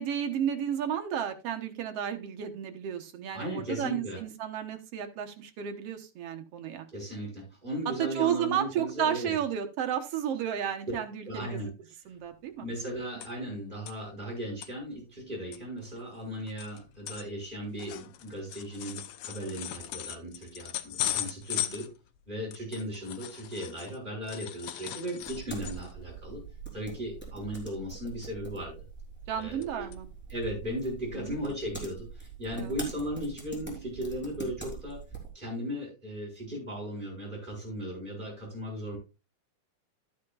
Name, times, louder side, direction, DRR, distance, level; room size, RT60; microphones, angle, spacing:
voice 1, 0.0-6.9 8.0-11.7 12.1-12.7 21.7-21.8 29.3-30.1 31.1-31.4 32.5-32.7, right 9 dB, 60° right, 6 dB, 1.9 m, -32 dB
voice 2, 3.3-4.2 6.9-9.4 11.2-11.7 12.6-21.9 22.3-26.4 26.7-28.7 29.3-29.9 30.3-35.0 35.3-39.0, equal, 15° right, -3 dB, 6.8 m, -37 dB
sound 1, 12.3-12.4 12.6-13.5 13.9-14.0 14.4-14.7 15.2-15.3 15.5-24.0 24.3-26.0 26.4-26.6 26.9-27.2 28.2-28.8 29.2-29.7 29.9-30.0 30.6-30.7, left 12 dB, 85° left, 1.2 m, -38 dB
sound 2, 25.2-35.3, right 5 dB, 5° left, 3.2 m, -43 dB
12.5 x 9.5 x 2.4 m, 0.28 s
omnidirectional pair, 3.5 m